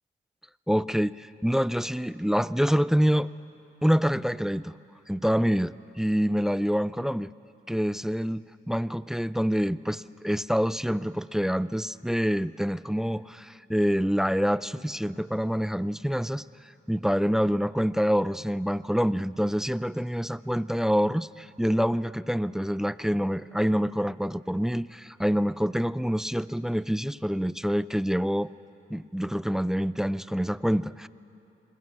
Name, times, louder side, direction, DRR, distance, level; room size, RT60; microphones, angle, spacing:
voice 1, 0.7-3.3 3.8-4.8 5.1-7.3 7.7-16.4 16.9-28.5 28.9-31.1, equal, ahead, 18 dB, 0.4 m, -26 dB
21.5 x 20.0 x 6.0 m, 2.9 s
cardioid pair, 50°, 20 cm